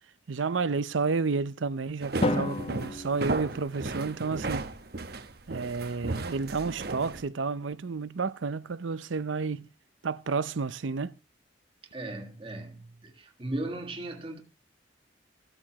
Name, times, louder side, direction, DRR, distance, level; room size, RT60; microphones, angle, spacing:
voice 1, 0.3-4.7 5.5-9.7 10.0-11.2, right 4 dB, 90° right, 0.6 m, -31 dB
sound 1, 2.0-7.2, right 2 dB, 55° right, 1.0 m, -35 dB
Drum, 2.2-4.3, left 2 dB, 30° left, 0.8 m, -32 dB
voice 2, 11.9-14.4, right 2 dB, 30° right, 1.7 m, -37 dB
15.5 x 13.0 x 3.0 m
head